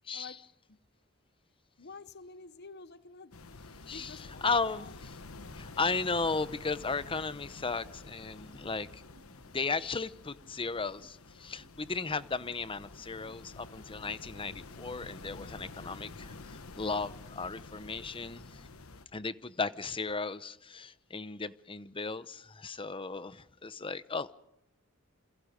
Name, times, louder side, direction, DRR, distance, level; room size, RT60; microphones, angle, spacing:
voice 1, 0.1-0.4 0.7-0.8 1.8-3.3 3.8-5.0, left 4 dB, 55° left, 0.9 m, -49 dB
sound 1, 3.3-19.1, left 3 dB, 85° left, 1.2 m, -49 dB
voice 2, 3.9-5.1 5.6-9.0 9.4-18.5 19.1-24.3, left 4 dB, 25° left, 0.9 m, -35 dB
sound 2, 8.5-8.6 9.1-9.3 9.8-9.9 10.4-10.5 11.0-11.1 11.6-11.7 12.4-12.6 13.2-13.4 14.0-14.1 14.7-14.8 15.4-15.5, right 3 dB, 20° right, 4.0 m, -62 dB
28.0 x 27.5 x 5.2 m
head